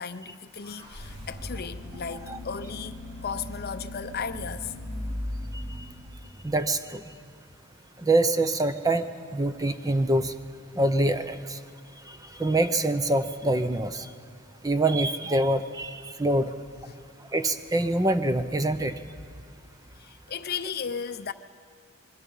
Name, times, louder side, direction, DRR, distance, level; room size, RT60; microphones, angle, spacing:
voice 1, 0.0-4.7 16.9-17.0 20.0-21.3, left 6 dB, 45° left, 11 dB, 0.6 m, -35 dB
sound 1, 0.5-6.4, left 1 dB, 70° right, 6.3 m, -38 dB
voice 2, 6.4-7.0 8.0-10.3 10.8-11.6 12.1-14.1 14.6-16.5 17.3-18.9, right 1 dB, 15° right, 10 dB, 0.7 m, -25 dB
24.5 x 22.0 x 5.5 m, 2.3 s
head